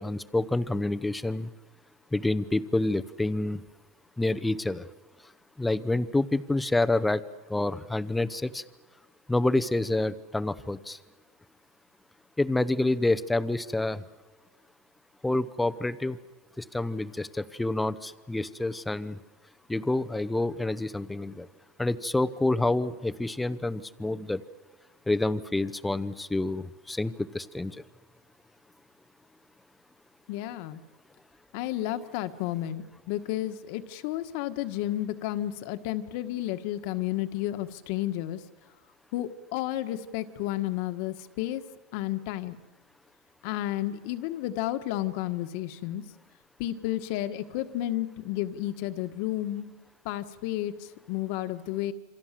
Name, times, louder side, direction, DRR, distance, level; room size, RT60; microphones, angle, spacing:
voice 1, 0.0-1.5 2.1-3.6 4.2-4.9 5.6-7.2 7.5-8.6 9.3-11.0 12.4-14.0 15.2-16.2 16.6-19.2 19.7-21.5 21.8-24.4 25.1-27.8, left 2 dB, 5° left, 12 dB, 0.9 m, -28 dB
voice 2, 30.3-30.8 31.5-38.4 39.1-41.6 41.9-42.6 43.4-46.0 46.6-49.7 50.0-51.9, left 14 dB, 55° left, 10 dB, 1.6 m, -32 dB
28.0 x 25.5 x 7.7 m, 1.3 s
supercardioid pair, 140°, 0 cm